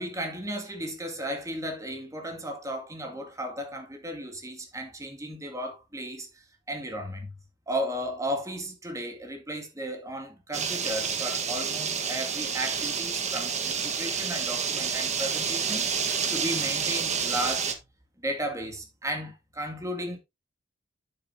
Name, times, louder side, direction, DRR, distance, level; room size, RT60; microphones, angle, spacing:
voice 1, 0.0-6.3 6.7-7.3 7.7-15.8 16.3-17.7 18.2-20.2, equal, 15° right, 2.1 m, -34 dB
sound 1, 10.5-17.7, right 6 dB, 35° right, 1.2 m, -29 dB
9.4 x 7.7 x 2.7 m
head